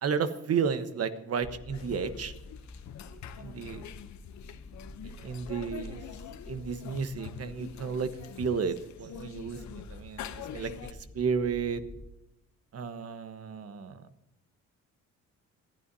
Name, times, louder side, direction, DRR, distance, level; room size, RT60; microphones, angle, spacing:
voice 1, 0.0-2.3 3.4-3.9 5.0-6.0 6.5-8.1 8.4-11.8 12.7-14.0, right 6 dB, 55° right, 10 dB, 1.2 m, -32 dB
sound 1, 1.4-12.1, left 2 dB, 20° left, 0.7 m, -48 dB
sound 2, 1.7-10.9, left 10 dB, 65° left, 0.8 m, -45 dB
21.0 x 12.5 x 2.7 m, 0.92 s
cardioid pair, 90°, 30 cm